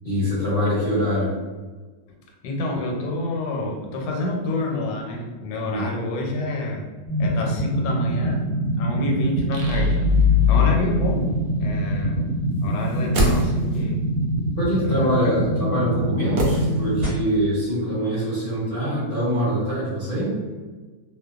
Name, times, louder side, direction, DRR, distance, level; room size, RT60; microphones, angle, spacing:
voice 1, 0.0-1.3 5.6-5.9 10.5-10.8 14.6-20.3, equal, 50° left, -9 dB, 0.6 m, -24 dB
voice 2, 2.4-6.8 7.2-8.5 8.8-10.0 10.5-11.3 11.6-12.3 12.6-14.0 14.8-15.3, left 1 dB, 80° left, 0 dB, 1.2 m, -28 dB
sound 1, 7.1-17.1, right 1 dB, 25° right, 1.2 m, -25 dB
sound 2, 9.5-12.2, left 7 dB, 85° right, 1.2 m, -21 dB
sound 3, 12.8-14.0 16.4-17.3 17.5-17.6, right 1 dB, 65° right, 0.9 m, -25 dB
2.7 x 2.2 x 2.3 m, 1.4 s
omnidirectional pair, 1.8 m